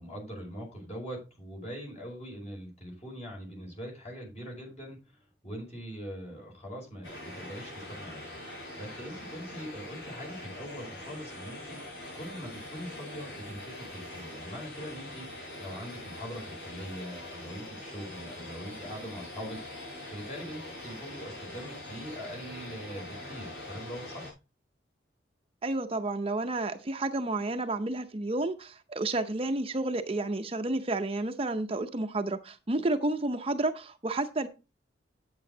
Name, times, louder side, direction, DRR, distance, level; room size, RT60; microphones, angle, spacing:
voice 1, 0.0-11.8 12.1-24.4, equal, 40° left, 5.2 m, -42 dB
sound 1, 7.0-24.3, left 1 dB, 75° left, 6.8 m, -43 dB
voice 2, 25.6-34.5, right 2 dB, 30° right, 0.7 m, -31 dB
8.7 x 8.6 x 3.9 m
head